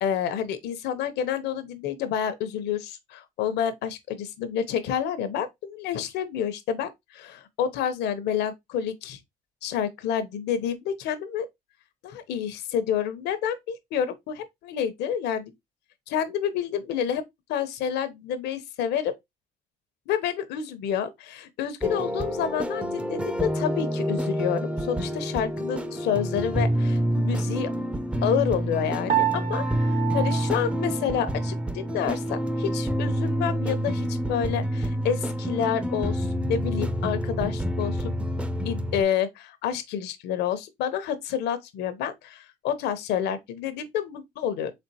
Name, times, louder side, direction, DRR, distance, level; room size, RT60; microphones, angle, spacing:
voice 1, 0.0-9.2 9.6-11.5 12.0-15.5 16.1-17.2 17.5-19.1 20.1-27.7 28.2-29.6 30.1-38.1 38.6-44.7, left 8 dB, 80° left, 0.8 m, -29 dB
sound 1, 21.8-39.0, equal, 5° right, 0.4 m, -28 dB
Piano, 29.1-31.6, right 12 dB, 65° right, 0.8 m, -29 dB
4.3 x 3.7 x 2.8 m
cardioid pair, 110°, 17 cm